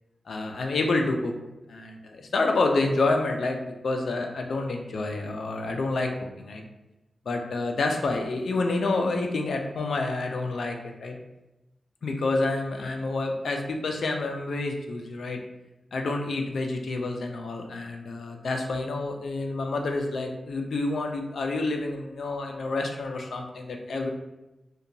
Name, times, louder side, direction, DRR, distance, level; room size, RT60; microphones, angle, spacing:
voice 1, 0.3-1.3 1.7-6.1 6.4-6.6 7.3-11.2 12.0-15.4 15.9-24.1, left 3 dB, 65° left, 2 dB, 0.3 m, -28 dB
2.8 x 2.2 x 2.6 m, 0.99 s
wide cardioid pair, 170°, 0 cm